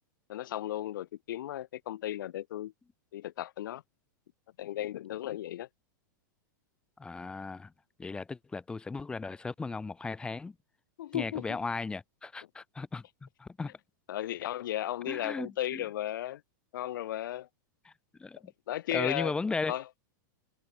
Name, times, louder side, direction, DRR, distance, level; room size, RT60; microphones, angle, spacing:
voice 1, 0.3-2.7 3.1-3.8 4.6-5.7 11.0-11.6 14.1-16.4 16.7-17.5 18.7-19.4 19.7-19.9, left 13 dB, 80° left, 0.6 m, -35 dB
voice 2, 7.0-7.7 8.0-10.5 11.1-13.7 15.1-15.8 18.2-18.4 18.9-19.7, left 4 dB, 10° left, 1.0 m, -36 dB
supercardioid pair, 150°, 11 cm